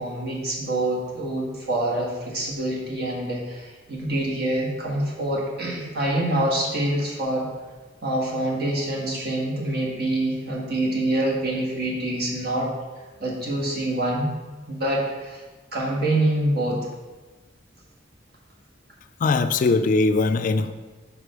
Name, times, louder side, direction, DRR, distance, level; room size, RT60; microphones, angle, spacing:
voice 1, 0.0-7.5 8.0-12.7 13.2-14.3 14.7-15.4 15.7-16.8, right 1 dB, 60° right, -3 dB, 1.5 m, -26 dB
voice 2, 19.2-20.7, left 3 dB, 45° left, 10 dB, 0.3 m, -20 dB
5.2 x 4.9 x 5.0 m, 1.3 s
head